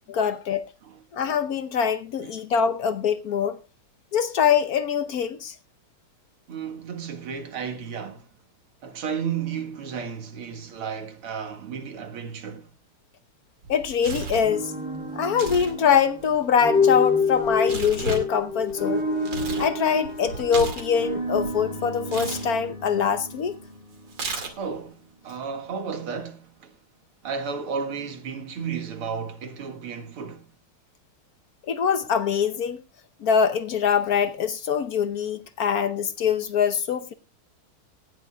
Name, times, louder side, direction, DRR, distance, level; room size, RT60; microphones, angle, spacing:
voice 1, 0.1-0.6 1.1-3.6 4.1-5.5 13.7-14.7 15.1-19.0 19.6-23.5 31.7-32.8 33.2-37.1, left 7 dB, 60° left, 1.0 m, -23 dB
voice 2, 6.5-8.3 8.8-12.7 24.6-26.7 27.2-30.4, right 6 dB, 90° right, 2.7 m, -33 dB
Tearing, 13.6-14.5 15.3-15.7 16.0-19.7 20.0-21.5 22.1-22.4 24.1-24.8, right 4 dB, 60° right, 2.9 m, -34 dB
sound 1, 14.4-24.5, left 3 dB, 80° left, 8.7 m, -28 dB
18.5 x 13.0 x 2.3 m
omnidirectional pair, 2.3 m